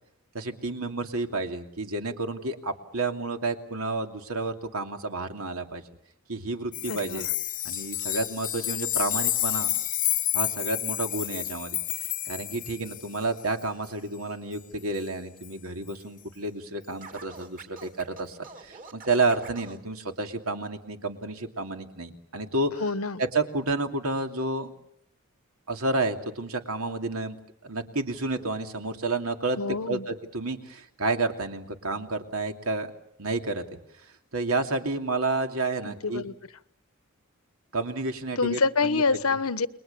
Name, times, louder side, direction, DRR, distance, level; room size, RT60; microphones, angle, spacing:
voice 1, 0.3-5.8 6.3-7.3 7.6-9.7 10.3-11.8 12.3-18.4 18.6-22.8 23.2-24.7 25.7-27.4 27.6-29.6 29.9-32.9 33.2-33.6 34.3-36.2 37.7-39.0, right 2 dB, 85° right, 5 dB, 2.7 m, -30 dB
sound 1, 6.7-13.2 15.4-15.5, left 13 dB, 40° left, 1.0 m, -29 dB
voice 2, 6.9-7.2 22.8-23.2 29.6-30.1 35.8-36.3 38.4-39.7, left 4 dB, 85° left, 14 dB, 1.1 m, -26 dB
Scratching (performance technique), 17.0-19.8, right 3 dB, 40° right, 3.3 m, -45 dB
30.0 x 22.0 x 7.0 m, 0.75 s
head